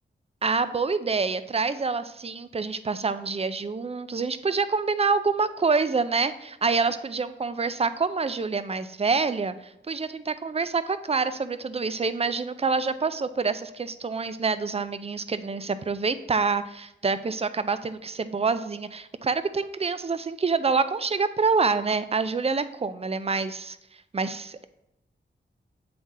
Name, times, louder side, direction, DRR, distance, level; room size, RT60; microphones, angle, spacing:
voice 1, 0.4-23.8 24.1-24.7, right 4 dB, 30° right, 13 dB, 0.4 m, -26 dB
7.7 x 3.7 x 4.1 m, 0.85 s
cardioid pair, 60°, 20 cm